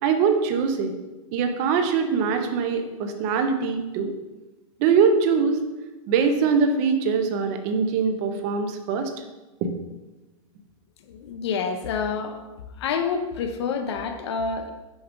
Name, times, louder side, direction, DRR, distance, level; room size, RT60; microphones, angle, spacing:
voice 1, 0.0-0.9 1.3-4.1 4.8-5.6 6.1-9.1 9.6-9.7, right 5 dB, 30° right, 7 dB, 0.5 m, -22 dB
voice 2, 11.1-12.4 12.8-14.7, left 5 dB, 50° left, 6 dB, 0.6 m, -28 dB
6.2 x 4.7 x 3.7 m, 1.1 s
supercardioid pair, 170°, 17 cm